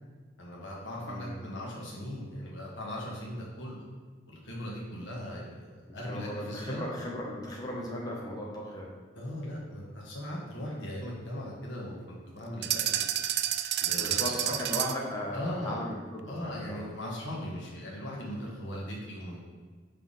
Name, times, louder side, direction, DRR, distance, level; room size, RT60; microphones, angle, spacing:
voice 1, 0.4-3.8 4.3-6.9 9.1-13.2 13.8-14.6 15.3-15.9 16.2-19.4, left 1 dB, 90° left, -4 dB, 1.4 m, -39 dB
voice 2, 1.1-1.4 5.9-8.9 14.0-16.8, left 1 dB, 20° left, -3 dB, 1.0 m, -37 dB
sound 1, 12.6-15.1, right 12 dB, 60° right, 0.3 m, -29 dB
5.7 x 3.5 x 5.5 m, 1.5 s
head